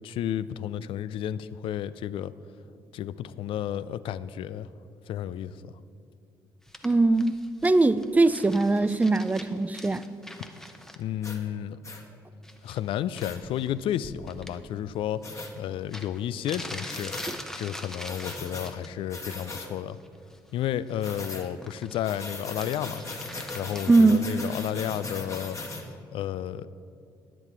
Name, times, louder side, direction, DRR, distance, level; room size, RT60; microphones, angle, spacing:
voice 1, 0.0-2.3 2.9-4.7 5.1-5.7 11.0-11.8 12.6-17.1 17.6-20.0 20.5-23.0 23.5-25.6 26.1-26.7, left 10 dB, 60° left, 16 dB, 0.3 m, -32 dB
sound 1, 6.7-10.9 12.4-12.9 13.2-14.6 15.6-15.7 15.9-18.9 19.3-19.7 19.9-22.2 22.5-23.9, left 1 dB, 5° left, 0.8 m, -44 dB
voice 2, 6.8-10.0 17.3-17.4 23.9-24.3, right 3 dB, 15° right, 14 dB, 0.4 m, -21 dB
sound 2, 11.2-11.4 11.8-12.0 13.2-13.4 15.2-15.5 16.9-17.4 18.0-18.7 19.1-19.7 21.0-21.5 22.0-25.8, left 3 dB, 30° left, 1.4 m, -38 dB
9.7 x 7.7 x 4.6 m, 2.5 s
hypercardioid pair, 45°, 10 cm